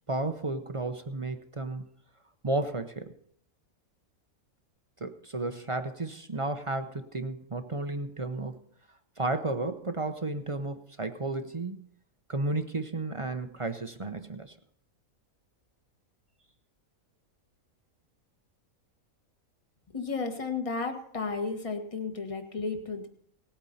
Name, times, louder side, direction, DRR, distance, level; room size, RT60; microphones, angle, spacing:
voice 1, 0.1-1.8 2.4-3.1 5.0-8.6 9.2-11.9 12.3-14.5, right 2 dB, 30° right, 8 dB, 0.6 m, -33 dB
voice 2, 19.9-23.1, left 4 dB, 25° left, 5 dB, 1.4 m, -33 dB
18.5 x 8.9 x 4.1 m, 0.67 s
omnidirectional pair, 1.5 m